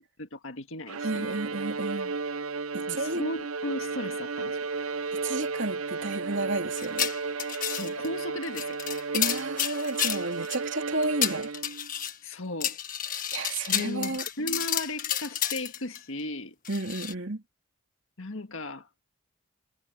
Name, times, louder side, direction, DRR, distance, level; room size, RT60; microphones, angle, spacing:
voice 1, 0.0-1.4 2.9-4.7 7.7-8.8 12.2-12.8 13.7-16.6 18.2-18.9, left 1 dB, 70° left, 1.8 m, -36 dB
Bowed string instrument, 0.9-11.9, right 4 dB, 90° right, 0.7 m, -34 dB
voice 2, 1.0-2.1 2.7-3.2 5.1-7.1 9.1-11.5 13.3-14.2 16.7-17.4, right 2 dB, 60° right, 3.1 m, -32 dB
sound 1, 6.8-8.1 8.4-10.6 11.0-12.2 12.6-16.0 16.7-17.1, left 10 dB, 40° left, 1.7 m, -31 dB
head